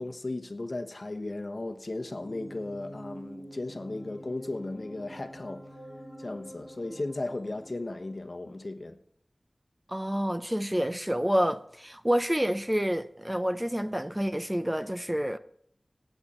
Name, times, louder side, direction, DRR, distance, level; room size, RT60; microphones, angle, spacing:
voice 1, 0.0-5.8 6.2-9.0, left 2 dB, 55° left, 1.1 m, -36 dB
sound 1, 2.1-8.7, equal, 10° left, 2.9 m, -47 dB
voice 2, 9.9-15.4, equal, 10° right, 0.7 m, -28 dB
18.0 x 8.1 x 4.3 m
wide cardioid pair, 40°, 0 cm